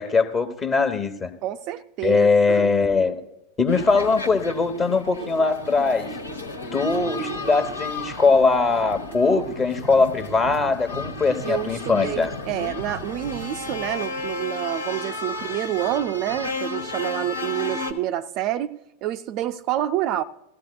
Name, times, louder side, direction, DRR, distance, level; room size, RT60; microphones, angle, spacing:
voice 1, 0.0-1.3 2.0-3.2 3.6-6.1 6.7-12.3, left 4 dB, 20° left, 8 dB, 1.0 m, -21 dB
voice 2, 1.4-2.7 11.4-20.2, right 13 dB, 40° right, 8 dB, 0.4 m, -28 dB
sound 1, 3.7-17.9, left 3 dB, 80° left, 1.1 m, -33 dB
18.5 x 14.5 x 2.3 m, 0.90 s
figure-of-eight pair, 90°, 0 cm